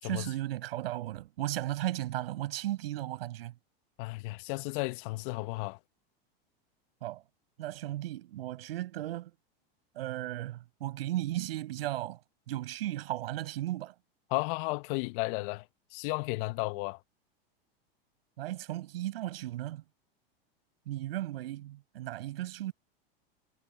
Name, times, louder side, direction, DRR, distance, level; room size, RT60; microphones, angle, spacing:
voice 1, 0.0-3.5 7.0-7.2 7.6-9.3 9.9-12.2 12.5-13.9 18.4-19.8 20.9-22.7, right 14 dB, 75° right, 5.9 m, -35 dB
voice 2, 4.0-5.8 14.3-15.6 15.9-17.0, left 25 dB, 55° left, 1.3 m, -33 dB
hypercardioid pair, 105°, 30 cm